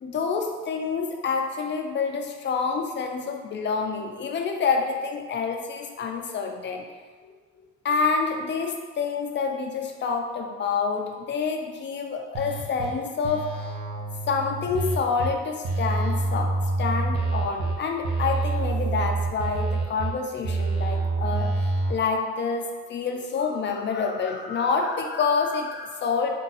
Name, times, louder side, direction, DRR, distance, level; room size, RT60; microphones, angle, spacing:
voice 1, 0.0-6.8 7.2-7.3 7.8-13.7 14.3-26.3, left 5 dB, 40° left, 3 dB, 0.5 m, -27 dB
sound 1, 12.3-12.9 13.2-15.3 15.6-17.7 18.0-20.1 20.4-21.9, right 3 dB, 70° right, 0.7 m, -27 dB
2.7 x 2.2 x 3.9 m, 1.5 s
cardioid pair, 90°, 30 cm